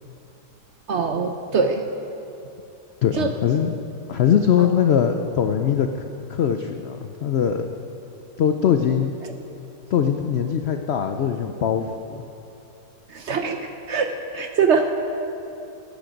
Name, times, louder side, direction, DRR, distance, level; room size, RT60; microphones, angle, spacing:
voice 1, 0.9-1.8 3.2-3.3 4.6-4.7 13.1-13.6 13.9-14.9, right 5 dB, 60° right, 5 dB, 0.8 m, -22 dB
voice 2, 3.0-3.8 4.1-7.7 8.4-9.2 9.9-12.2, left 8 dB, 90° left, 6 dB, 0.5 m, -21 dB
16.0 x 8.5 x 5.2 m, 2.8 s
omnidirectional pair, 1.8 m